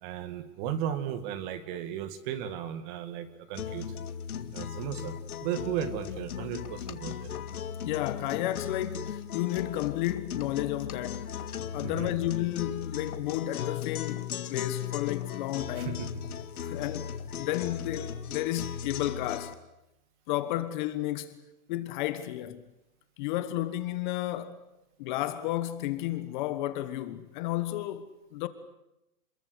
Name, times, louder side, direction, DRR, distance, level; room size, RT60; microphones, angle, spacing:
voice 1, 0.0-3.9 4.5-5.1 5.4-7.3 11.8-12.2 15.8-16.1 16.6-16.7, right 9 dB, 35° right, 2.3 m, -35 dB
sound 1, 3.5-19.5, left 9 dB, 75° left, 2.2 m, -37 dB
voice 2, 7.8-11.4 11.7-16.1 16.6-19.6 20.3-21.4 21.7-22.7 23.2-24.6 25.0-28.5, left 14 dB, 30° left, 1.4 m, -32 dB
27.5 x 22.0 x 8.2 m
hypercardioid pair, 155°, 44 cm